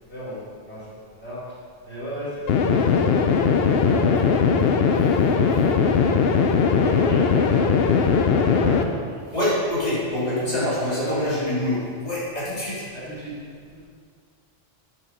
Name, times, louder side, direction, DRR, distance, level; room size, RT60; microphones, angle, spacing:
voice 1, 0.1-0.9 1.2-1.5 1.8-3.2 3.9-4.4 4.9-5.0 6.6-9.0 10.4-11.2 12.9-13.4 13.7-13.9, equal, 85° left, -9 dB, 3.2 m, -34 dB
sound 1, 2.5-8.8, left 5 dB, 70° left, 0.9 m, -19 dB
voice 2, 9.3-12.9, left 1 dB, 40° left, -9 dB, 3.3 m, -25 dB
10.5 x 7.1 x 5.5 m, 2.1 s
omnidirectional pair, 1.1 m